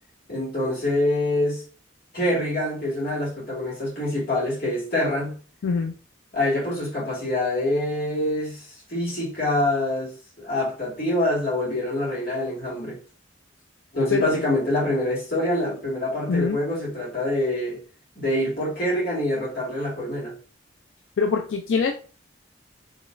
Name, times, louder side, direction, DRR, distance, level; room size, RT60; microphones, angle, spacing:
voice 1, 0.3-1.6 2.1-5.4 6.3-13.0 13.9-17.8 18.2-20.3, left 1 dB, 50° left, 1.9 m, -25 dB
voice 2, 5.6-5.9 14.1-14.4 16.3-16.6 21.2-21.9, left 5 dB, 85° left, 0.4 m, -23 dB
4.0 x 3.0 x 2.5 m
head